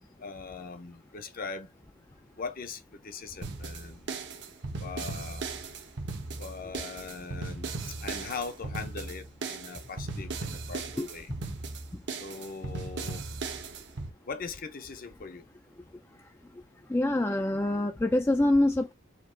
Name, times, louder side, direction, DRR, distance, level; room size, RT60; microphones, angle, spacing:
voice 1, 0.2-1.7 2.4-4.1 4.8-5.5 6.4-11.3 12.2-13.2 14.3-15.5, left 5 dB, 45° left, 0.7 m, -40 dB
sound 1, 3.4-14.1, right 3 dB, 60° right, 0.8 m, -37 dB
voice 2, 16.9-18.9, left 1 dB, 10° left, 0.3 m, -25 dB
4.4 x 2.4 x 3.7 m
head